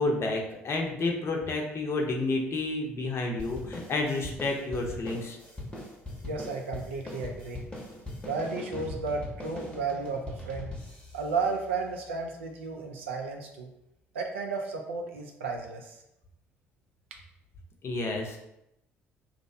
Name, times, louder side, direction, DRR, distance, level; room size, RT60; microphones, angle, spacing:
voice 1, 0.0-5.4 17.8-18.4, left 2 dB, 45° left, 2 dB, 0.6 m, -30 dB
sound 1, 3.4-12.2, left 1 dB, 15° left, 0.8 m, -41 dB
voice 2, 6.2-7.6 8.3-10.7 11.1-13.7 14.1-16.0, right 4 dB, 90° right, 2 dB, 0.3 m, -33 dB
2.5 x 2.0 x 2.5 m, 0.82 s
hypercardioid pair, 55°, 6 cm